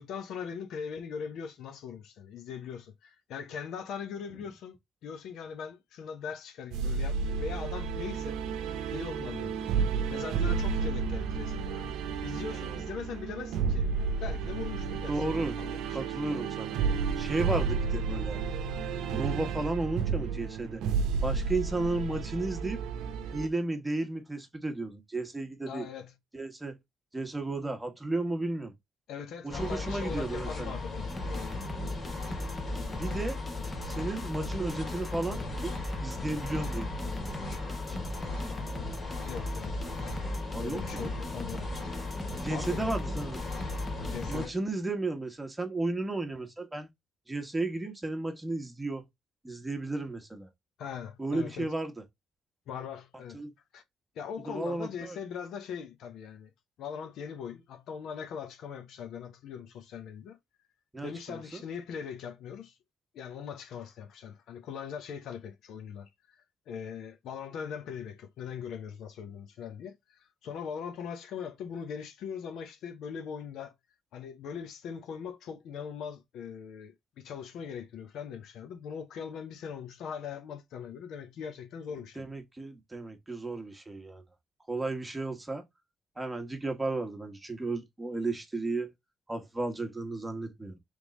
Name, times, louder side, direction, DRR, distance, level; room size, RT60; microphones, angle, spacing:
voice 1, 0.0-8.4 8.9-13.9 14.2-15.2 15.6-16.1 25.7-26.1 29.1-31.6 39.3-40.3 40.6-41.7 42.5-42.9 44.1-44.6 50.8-51.7 52.7-53.4 53.7-53.8 54.2-56.5 56.8-60.4 61.0-62.7 63.1-73.7 74.1-82.2, left 7 dB, 80° left, 0.7 m, -41 dB
sound 1, 6.7-23.5, right 5 dB, 90° right, 0.7 m, -32 dB
voice 2, 12.5-12.9 15.1-15.5 15.9-16.8 17.2-18.4 19.1-20.8 21.2-22.8 23.3-25.9 26.3-26.8 27.1-28.7 29.4-30.8 32.9-33.4 33.8-35.7 36.0-38.4 40.5-41.1 42.4-43.4 44.3-46.9 47.3-49.0 49.4-50.5 51.2-52.0 53.3-53.5 54.5-55.2 60.9-61.6 82.2-84.2 84.7-85.6 86.2-88.9 89.3-90.8, right 2 dB, 15° right, 1.2 m, -34 dB
sound 2, 29.5-44.5, left 3 dB, 40° left, 2.0 m, -37 dB
sound 3, 31.1-44.7, right 1 dB, 20° left, 1.0 m, -40 dB
3.5 x 3.3 x 3.8 m
cardioid pair, 90°, 0 cm